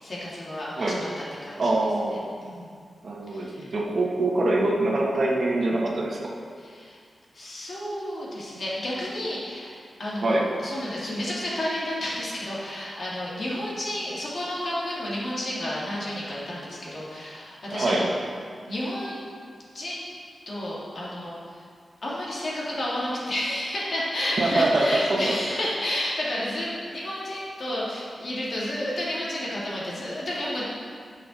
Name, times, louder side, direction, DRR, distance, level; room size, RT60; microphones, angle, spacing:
voice 1, 0.0-1.1 1.4-1.6 2.4-2.7 3.3-3.7 6.6-7.0 7.3-18.1 18.7-19.3 19.7-20.0 20.5-21.4 22.0-30.6, left 1 dB, 50° left, -6 dB, 2.3 m, -31 dB
voice 2, 1.6-2.2 3.0-6.3 10.2-10.5 17.7-18.0 24.4-25.3, right 2 dB, 55° right, -2 dB, 1.2 m, -24 dB
10.0 x 5.7 x 4.1 m, 2.1 s
wide cardioid pair, 110°, 0 cm